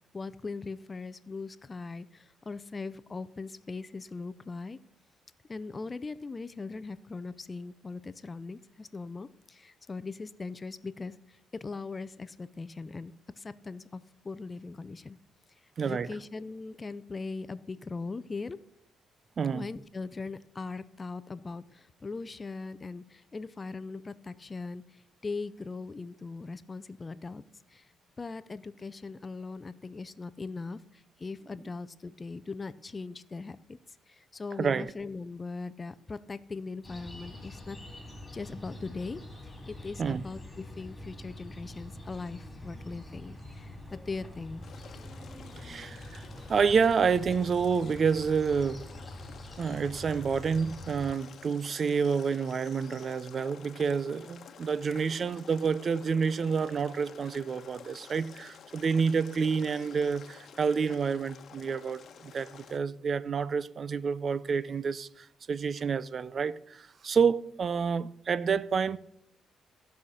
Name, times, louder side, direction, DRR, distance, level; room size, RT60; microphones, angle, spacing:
voice 1, 0.1-4.8 5.5-15.2 15.8-18.6 19.5-27.4 27.7-27.9 28.2-33.8 34.1-37.8 38.3-44.6, left 4 dB, 30° left, 0.6 m, -40 dB
voice 2, 15.8-16.1 19.4-19.7 34.6-34.9 40.0-40.2 45.6-48.9 49.6-69.0, right 6 dB, 45° right, 0.5 m, -29 dB
sound 1, 36.8-51.1, left 1 dB, 15° left, 2.9 m, -45 dB
sound 2, 44.6-62.8, left 7 dB, 60° left, 1.1 m, -51 dB
15.5 x 5.7 x 6.5 m
cardioid pair, 90°, 0 cm